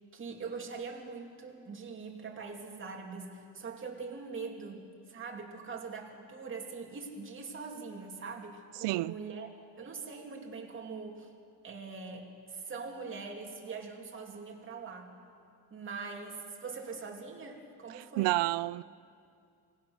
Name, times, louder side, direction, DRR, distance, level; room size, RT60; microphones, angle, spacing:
voice 1, 0.0-9.5 9.8-11.3 11.6-15.1 15.7-18.4, right 4 dB, 30° right, 2.6 m, -42 dB
voice 2, 8.8-9.1 18.0-18.8, right 19 dB, 80° right, 0.6 m, -30 dB
27.5 x 19.0 x 6.4 m
cardioid pair, 155°, 42 cm